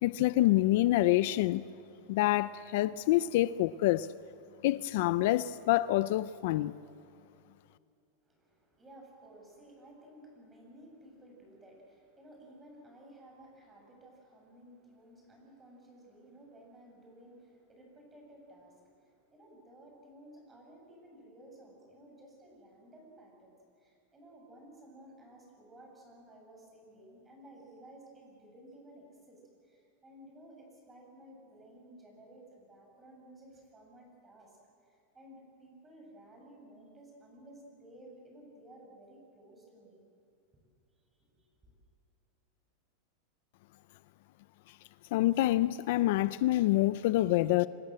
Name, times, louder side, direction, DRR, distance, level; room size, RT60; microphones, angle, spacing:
voice 1, 0.0-1.6 2.1-4.1 4.6-6.7 45.1-47.7, left 16 dB, 60° left, 0.6 m, -27 dB
voice 2, 8.2-40.0 40.9-41.7, right 1 dB, 15° right, 7.6 m, -55 dB
28.0 x 25.0 x 7.7 m
supercardioid pair, 155°, 0 cm